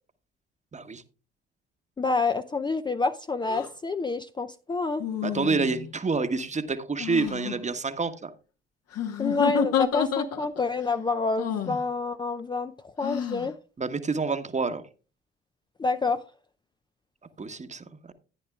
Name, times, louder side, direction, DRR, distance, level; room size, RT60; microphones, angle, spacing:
voice 1, 0.7-1.0 5.2-8.3 13.8-14.8 17.4-18.1, right 4 dB, 25° right, 1.1 m, -28 dB
voice 2, 2.0-5.0 9.2-13.6 15.8-16.2, left 3 dB, 15° left, 0.5 m, -28 dB
sound 1, 3.4-3.7 5.0-5.9 7.0-7.6 8.9-10.7 11.4-11.8 13.0-13.5, left 8 dB, 60° left, 1.3 m, -29 dB
14.5 x 9.9 x 2.3 m
hypercardioid pair, 50°, 29 cm